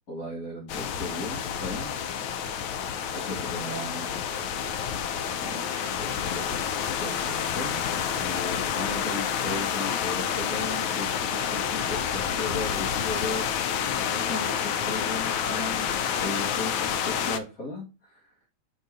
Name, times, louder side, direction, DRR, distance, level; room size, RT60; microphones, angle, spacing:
voice 1, 0.1-2.7 3.1-4.5 5.4-6.6 7.0-7.9 8.2-15.9 16.2-18.3, left 2 dB, 45° left, -5 dB, 2.3 m, -37 dB
sound 1, 0.7-17.4, left 8 dB, 80° left, 1.5 m, -29 dB
5.4 x 3.9 x 4.7 m, 0.29 s
omnidirectional pair, 2.3 m